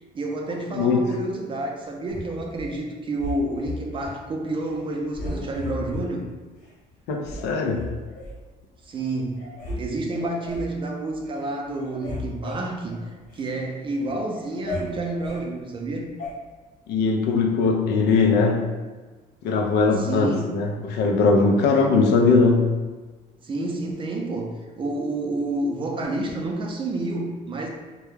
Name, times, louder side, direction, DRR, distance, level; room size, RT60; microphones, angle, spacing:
voice 1, 0.1-6.3 8.8-9.5 9.8-16.1 20.0-20.6 23.4-27.7, right 2 dB, 30° right, 1 dB, 0.4 m, -29 dB
voice 2, 0.7-1.1 7.1-7.9 16.9-18.7 19.4-22.7, left 4 dB, 80° left, 2 dB, 0.4 m, -20 dB
sound 1, 2.1-2.7 3.2-4.2 4.6-4.8 5.1-6.1 6.6-6.7 7.2-8.4 9.0-9.1 9.4-9.8 10.1-10.7 11.2-11.5 11.7-13.5 13.9-15.4 16.2-16.3, left 2 dB, 45° left, 1.0 m, -35 dB
2.2 x 2.1 x 3.1 m, 1.3 s
cardioid pair, 110°, 17 cm